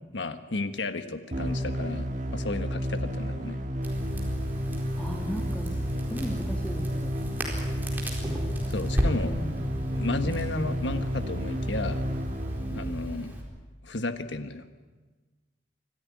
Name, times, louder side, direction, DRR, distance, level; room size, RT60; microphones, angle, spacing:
voice 1, 0.1-3.6 8.7-9.4 10.0-12.0 12.7-13.3 13.8-14.6, left 2 dB, 90° left, 9 dB, 1.4 m, -33 dB
sound 1, 1.3-13.3, equal, 45° right, 1.8 m, -32 dB
Crackle, 3.8-13.4, equal, 10° right, 4.3 m, -34 dB
voice 2, 5.0-5.8 6.1-7.1 9.3-9.6, equal, 5° left, 2 dB, 1.8 m, -36 dB
26.0 x 15.0 x 9.7 m, 1.3 s
head